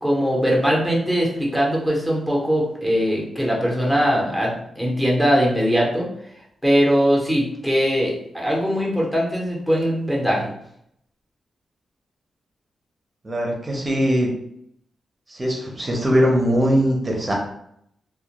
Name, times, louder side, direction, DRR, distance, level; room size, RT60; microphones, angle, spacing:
voice 1, 0.0-6.0 6.6-10.5, equal, 5° left, -3 dB, 0.8 m, -21 dB
voice 2, 13.2-14.3 15.3-17.3, equal, 25° right, 0 dB, 0.7 m, -20 dB
2.2 x 2.1 x 2.8 m, 0.72 s
wide cardioid pair, 110°, 0 cm